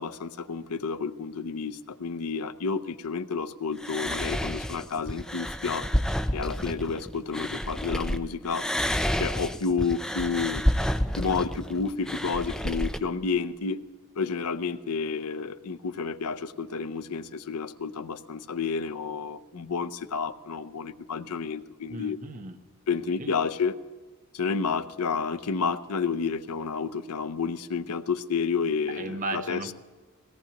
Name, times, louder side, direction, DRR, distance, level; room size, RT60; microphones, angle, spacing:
voice 1, 0.0-5.9 6.3-8.7 9.2-10.6 11.2-13.8 14.2-22.2 22.9-23.8 24.3-29.7, left 5 dB, 85° left, 12 dB, 0.6 m, -30 dB
sound 1, 3.8-8.2 8.5-13.0, equal, 5° left, 0.4 m, -29 dB
voice 2, 21.9-22.6 23.2-23.3 28.9-29.7, right 2 dB, 35° right, 7 dB, 0.8 m, -35 dB
21.5 x 17.5 x 2.9 m, 1.3 s
head